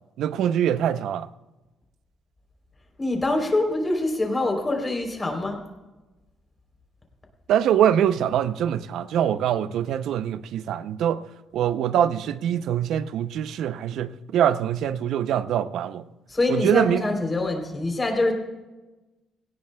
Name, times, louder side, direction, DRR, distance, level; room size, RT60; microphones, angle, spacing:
voice 1, 0.2-1.3 7.5-11.2 11.5-16.0 16.5-17.0, right 10 dB, 80° right, 0.5 m, -23 dB
voice 2, 3.0-5.6 16.3-18.3, left 2 dB, 25° left, 3.3 m, -24 dB
18.0 x 17.0 x 2.2 m
cardioid pair, 90°, 0 cm